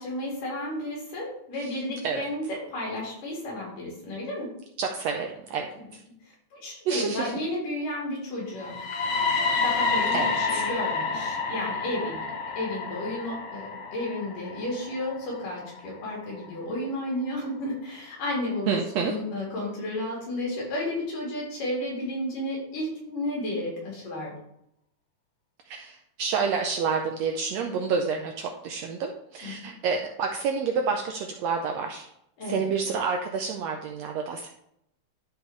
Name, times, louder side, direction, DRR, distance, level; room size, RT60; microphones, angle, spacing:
voice 1, 0.0-4.5 5.8-5.9 6.5-8.8 9.6-12.3 12.6-24.3 29.4-29.6 32.4-32.7, left 1 dB, 90° left, -4 dB, 4.5 m, -32 dB
voice 2, 4.8-5.7 6.9-7.3 10.1-10.6 18.7-19.1 25.7-32.1 32.5-34.5, right 5 dB, 85° right, 3 dB, 1.5 m, -29 dB
sound 1, 8.5-16.5, left 4 dB, 70° left, 2.3 m, -29 dB
12.0 x 4.8 x 3.2 m, 0.76 s
omnidirectional pair, 3.7 m